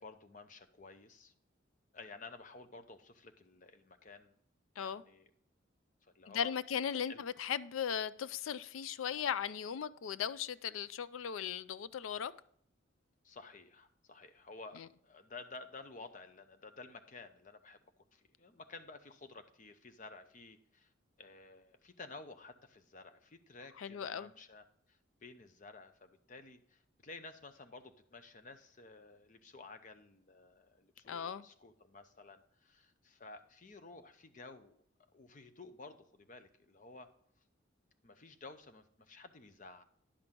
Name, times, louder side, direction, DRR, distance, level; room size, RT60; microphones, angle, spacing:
voice 1, 0.0-1.3 1.9-4.3 4.8-5.3 6.0-6.5 7.1-7.2 13.2-17.8 18.1-20.9 21.2-34.8 35.1-37.1 38.0-39.8, left 3 dB, 40° left, 0.6 m, -53 dB
voice 2, 6.3-12.3 14.8-14.9 23.8-24.3 31.1-31.5, left 8 dB, 80° left, 0.4 m, -37 dB
10.0 x 6.1 x 3.7 m
head